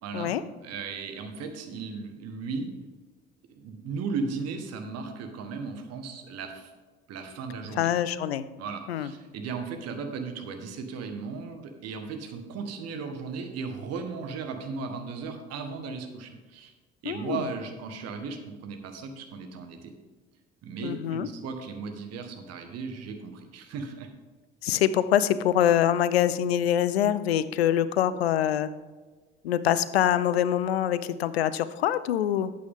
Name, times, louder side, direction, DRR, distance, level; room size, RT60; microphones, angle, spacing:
voice 1, 0.0-0.3 0.6-2.7 3.5-6.7 7.1-7.9 8.6-16.7 17.0-19.9 20.6-24.1, right 4 dB, 55° right, 6 dB, 1.5 m, -36 dB
voice 2, 7.8-8.4 8.9-9.1 17.0-17.5 20.8-21.3 24.6-28.7 29.4-32.5, left 10 dB, 80° left, 15 dB, 0.5 m, -24 dB
12.0 x 8.5 x 3.6 m, 1.3 s
figure-of-eight pair, 55°, 31 cm